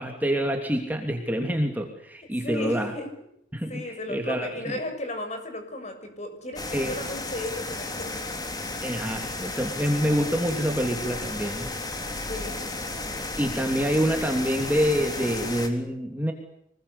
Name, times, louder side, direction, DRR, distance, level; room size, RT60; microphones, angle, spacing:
voice 1, 0.0-2.9 3.5-4.8 6.7-7.0 8.8-11.7 13.4-16.3, equal, 10° right, 3 dB, 3.1 m, -26 dB
voice 2, 2.4-3.1 3.7-8.2 12.3-12.7, left 1 dB, 35° left, 7 dB, 6.5 m, -35 dB
sound 1, 6.6-15.7, left 2 dB, 20° left, 3.5 m, -33 dB
25.5 x 21.5 x 8.6 m, 0.73 s
head